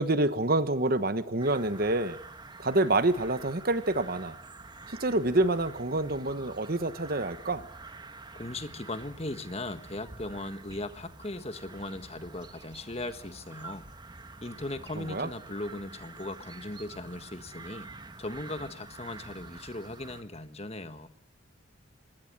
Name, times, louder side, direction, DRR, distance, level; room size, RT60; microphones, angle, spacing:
voice 1, 0.0-2.2 2.6-4.4 4.9-7.7 14.9-15.3, right 2 dB, 50° right, 12 dB, 1.3 m, -27 dB
sound 1, 1.4-20.2, right 3 dB, 20° right, 1.4 m, -47 dB
voice 2, 8.3-13.8 14.4-17.9 18.2-21.1, left 2 dB, 30° left, 10 dB, 1.4 m, -38 dB
25.0 x 21.0 x 7.5 m, 0.63 s
head